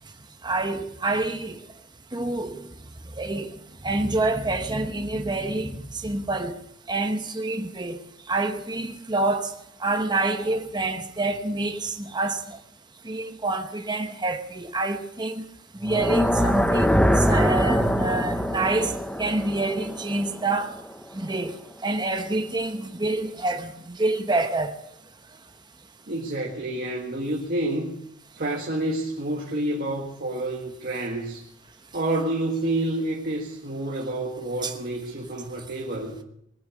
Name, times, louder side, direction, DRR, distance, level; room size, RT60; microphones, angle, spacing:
voice 1, 0.4-1.6 2.1-2.7 3.2-3.5 3.8-6.5 6.9-8.0 8.3-9.5 9.8-12.6 13.0-15.5 15.8-20.7 21.1-21.5 21.8-24.8 34.6-34.7, right 2 dB, 20° right, 1.1 m, -27 dB
sound 1, 15.8-20.9, equal, 5° left, 0.9 m, -23 dB
voice 2, 26.1-28.0 28.4-31.4 31.9-36.2, right 1 dB, 45° right, 1.7 m, -28 dB
20.5 x 9.6 x 6.4 m
head